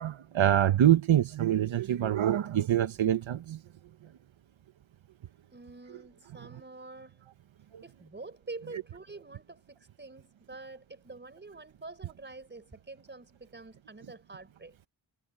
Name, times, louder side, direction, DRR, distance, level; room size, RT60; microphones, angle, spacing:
voice 1, 0.0-3.6 7.7-7.8, right 11 dB, 85° right, 1.0 m, -25 dB
voice 2, 5.5-7.2 7.8-14.8, right 3 dB, 25° right, 5.0 m, -47 dB
wide cardioid pair, 175°, 45 cm